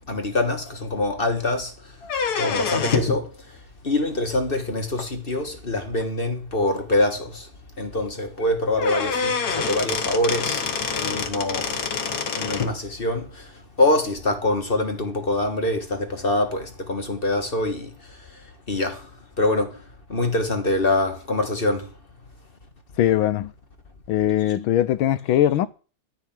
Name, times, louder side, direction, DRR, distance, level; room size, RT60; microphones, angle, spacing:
voice 1, 0.1-1.7 2.3-3.3 3.8-7.5 7.8-10.6 10.9-11.8 12.3-13.5 13.8-17.9 18.7-19.1 19.4-19.8 20.1-21.9, left 2 dB, 30° left, 1.5 m, -24 dB
sound 1, 2.0-3.2 5.0-5.1 6.0-6.1 6.5-6.6 6.9-7.0 8.4-8.5 8.8-12.7, left 5 dB, 55° left, 1.8 m, -26 dB
voice 2, 23.0-23.5 24.1-25.7, left 12 dB, 90° left, 1.6 m, -20 dB
13.0 x 5.9 x 9.0 m
omnidirectional pair, 2.2 m